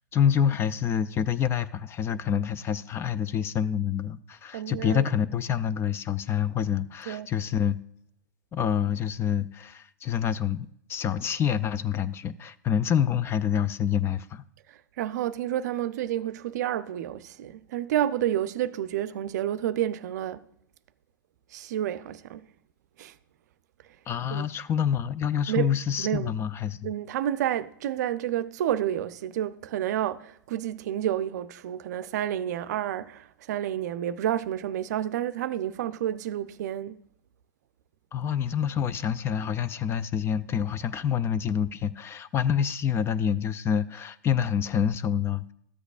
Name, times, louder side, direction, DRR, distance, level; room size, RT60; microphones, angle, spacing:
voice 1, 0.1-7.8 8.5-14.4 24.1-26.9 38.1-45.5, left 8 dB, 25° left, 0.4 m, -27 dB
voice 2, 4.5-5.0 7.0-7.3 14.7-20.4 21.5-22.4 23.0-23.1 24.3-24.5 25.5-25.7 26.0-26.4 26.8-37.0, right 11 dB, 60° right, 0.5 m, -30 dB
13.5 x 7.9 x 2.4 m
hypercardioid pair, 105°, 11 cm